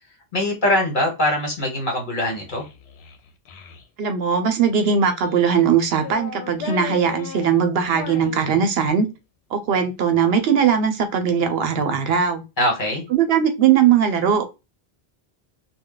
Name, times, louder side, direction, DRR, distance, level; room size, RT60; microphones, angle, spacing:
voice 1, 0.3-2.6 12.6-13.0, left 1 dB, 50° left, 0 dB, 1.3 m, -22 dB
Child speech kid speaking, 2.2-3.8 4.6-5.5 5.9-9.1, left 6 dB, 85° left, 0.8 m, -37 dB
voice 2, 4.0-9.1 9.5-12.4 13.1-14.4, right 7 dB, 75° right, 8 dB, 0.8 m, -19 dB
2.2 x 2.2 x 3.7 m, 0.25 s
omnidirectional pair, 1.0 m